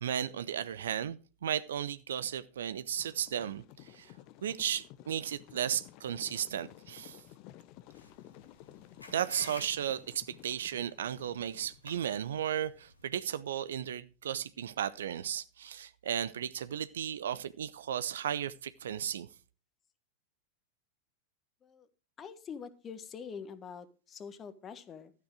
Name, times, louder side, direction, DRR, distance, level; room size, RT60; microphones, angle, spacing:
voice 1, 0.0-4.1 4.4-7.2 9.1-19.3, right 9 dB, 65° right, 0.7 m, -35 dB
sound 1, 3.0-12.1, left 14 dB, 40° left, 0.8 m, -54 dB
sound 2, 7.9-13.1, left 2 dB, 85° left, 2.4 m, -52 dB
voice 2, 22.2-25.1, left 6 dB, 25° left, 1.4 m, -45 dB
13.0 x 9.3 x 4.8 m
figure-of-eight pair, 90°, 0 cm